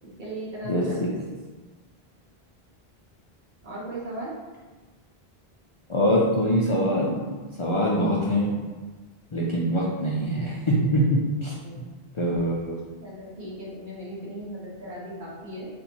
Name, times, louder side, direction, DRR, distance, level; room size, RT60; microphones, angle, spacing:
voice 1, 0.0-1.4 3.6-4.3 11.6-11.7 13.0-15.7, right 1 dB, 50° right, -6 dB, 1.1 m, -37 dB
voice 2, 0.6-1.1 5.9-7.2 7.6-8.5 9.3-11.5 12.1-12.7, equal, 50° left, -5 dB, 0.3 m, -23 dB
2.8 x 2.6 x 4.3 m, 1.3 s
omnidirectional pair, 1.0 m